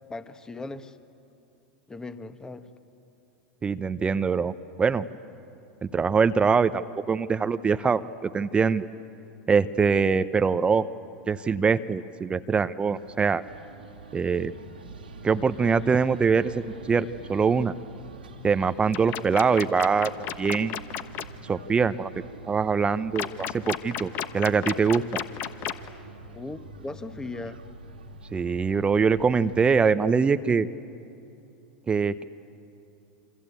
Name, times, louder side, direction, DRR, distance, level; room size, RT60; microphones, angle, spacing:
voice 1, 0.1-1.0 1.9-2.7 26.3-27.6, left 3 dB, 15° left, 10 dB, 1.5 m, -38 dB
voice 2, 3.6-4.5 4.8-5.0 5.9-8.9 9.5-10.9 11.3-13.4 14.1-14.5 15.2-17.7 18.4-20.1 20.4-20.8 21.4-22.1 22.5-25.0 28.3-30.7 31.9-32.2, right 5 dB, 20° right, 13 dB, 0.8 m, -23 dB
sound 1, 12.9-29.7, right 2 dB, 90° right, 2.5 m, -45 dB
sound 2, 18.9-21.2 23.1-25.9, left 10 dB, 45° left, 1.2 m, -32 dB
27.0 x 25.5 x 8.5 m, 2.7 s
hypercardioid pair, 90°, 5 cm